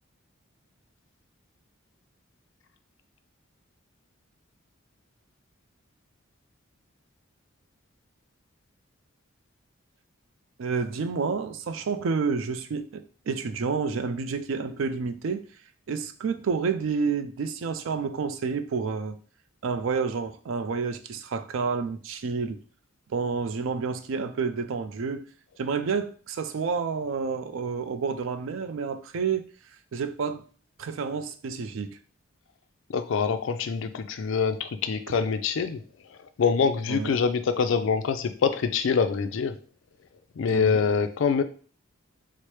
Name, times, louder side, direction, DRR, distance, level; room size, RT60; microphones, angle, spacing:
voice 1, 10.6-15.5 15.9-19.2 19.6-22.6 23.1-25.2 25.6-29.5 29.9-30.4 30.8-32.0 36.9-37.2 40.5-40.8, right 5 dB, 70° right, 0.4 m, -29 dB
voice 2, 32.9-35.8 36.4-39.6 40.4-41.4, left 5 dB, 65° left, 0.3 m, -25 dB
4.4 x 2.0 x 3.1 m
head